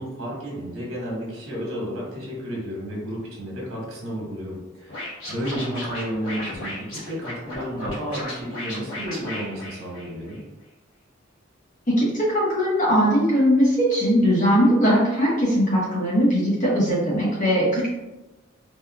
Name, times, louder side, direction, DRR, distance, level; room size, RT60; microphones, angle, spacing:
voice 1, 0.0-10.4, equal, 90° right, -3 dB, 1.0 m, -32 dB
Scratching (performance technique), 4.9-10.4, left 1 dB, 80° left, 0.9 m, -34 dB
voice 2, 11.9-17.9, equal, 40° left, -5 dB, 0.7 m, -20 dB
3.6 x 2.1 x 2.2 m, 1.1 s
head